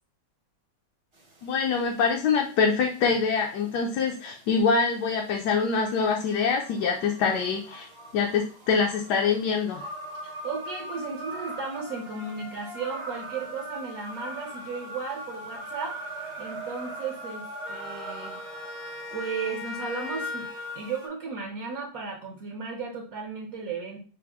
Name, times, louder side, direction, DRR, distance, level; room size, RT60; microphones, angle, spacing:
sound 1, 1.2-21.1, equal, 30° right, 0.5 m, -41 dB
voice 1, 1.4-7.9 8.1-9.8, left 5 dB, 75° left, 1 dB, 1.1 m, -25 dB
voice 2, 10.2-16.0 16.4-17.4 17.7-18.4 19.1-20.5 20.8-24.0, right 4 dB, 60° right, -2 dB, 1.1 m, -35 dB
Wind instrument woodwind instrument, 17.6-21.0, left 2 dB, 40° left, 0.7 m, -41 dB
5.7 x 2.1 x 3.4 m, 0.40 s
omnidirectional pair, 1.9 m